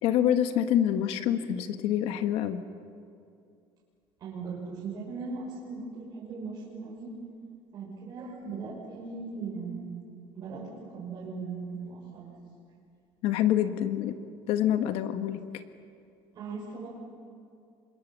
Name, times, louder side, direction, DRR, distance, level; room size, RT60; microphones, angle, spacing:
voice 1, 0.0-2.6 13.2-14.2 14.5-15.6, left 10 dB, 65° left, 9 dB, 1.4 m, -26 dB
voice 2, 4.2-7.1 7.7-12.3 16.4-16.9, right 4 dB, 35° right, -6 dB, 6.2 m, -39 dB
28.5 x 26.0 x 7.4 m, 2.4 s
cardioid pair, 175°, 10 cm